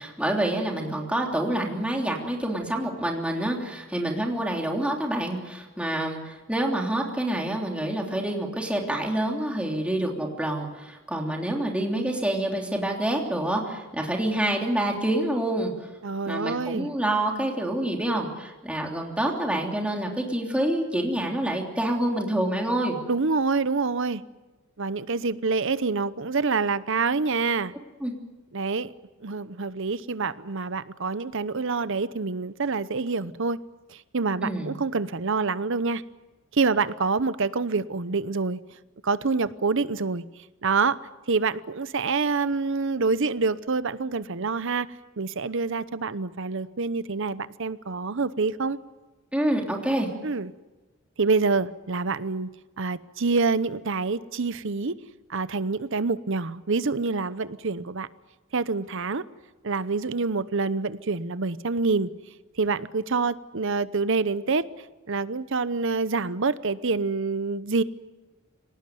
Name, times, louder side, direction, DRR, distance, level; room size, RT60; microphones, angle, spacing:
voice 1, 0.0-15.9 16.3-23.0 28.0-28.1 34.4-34.7 49.3-50.1, right 1 dB, 5° right, 0 dB, 3.2 m, -27 dB
voice 2, 16.0-16.9 23.1-24.2 24.8-27.7 28.5-28.9 29.2-33.6 33.9-36.0 36.5-38.6 39.0-40.2 40.6-41.0 41.3-48.8 50.2-50.5 51.2-52.5 52.8-55.0 55.3-58.1 58.5-59.2 59.6-62.1 62.6-64.6 65.1-67.8, right 4 dB, 65° right, 15 dB, 0.9 m, -26 dB
25.5 x 18.5 x 9.3 m, 1.2 s
head